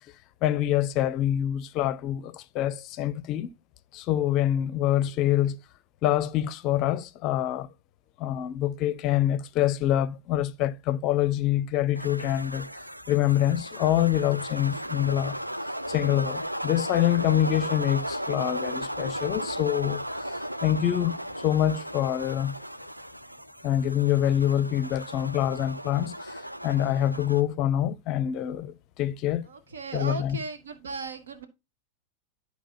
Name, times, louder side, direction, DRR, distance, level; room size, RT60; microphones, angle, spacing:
voice 1, 0.4-3.5 3.9-5.6 6.0-7.7 8.2-12.7 13.1-15.4 15.9-22.6 23.6-29.4 29.9-30.4, left 12 dB, 40° left, 0.5 m, -26 dB
sound 1, 11.9-27.4, equal, 90° right, 0.3 m, -35 dB
voice 2, 29.4-31.5, right 4 dB, 65° right, 0.8 m, -36 dB
11.5 x 4.6 x 2.7 m
figure-of-eight pair, 90°, 0 cm